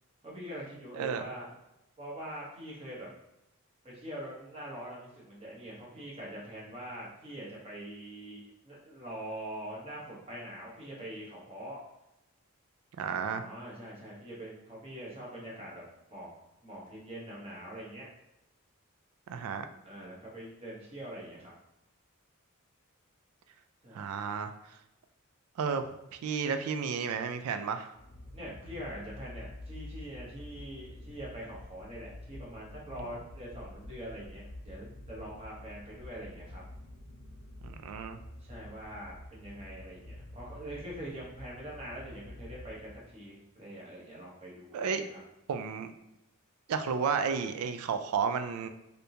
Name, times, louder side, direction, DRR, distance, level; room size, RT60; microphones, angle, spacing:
voice 1, 0.2-1.5 2.0-3.1 3.8-11.8 13.3-15.8 16.1-16.3 16.6-18.1 19.8-21.5 23.8-24.0 28.3-36.6 38.4-45.2, right 1 dB, 30° right, -5 dB, 1.0 m, -44 dB
voice 2, 13.0-13.4 19.3-19.7 23.9-24.5 25.6-25.8 26.1-27.9 37.6-38.2 44.7-45.0 45.5-45.9 46.7-48.7, right 6 dB, 85° right, 8 dB, 0.3 m, -32 dB
drone sound hole, 27.9-43.3, left 1 dB, 60° left, 0.6 m, -48 dB
3.4 x 2.7 x 2.8 m, 0.89 s
head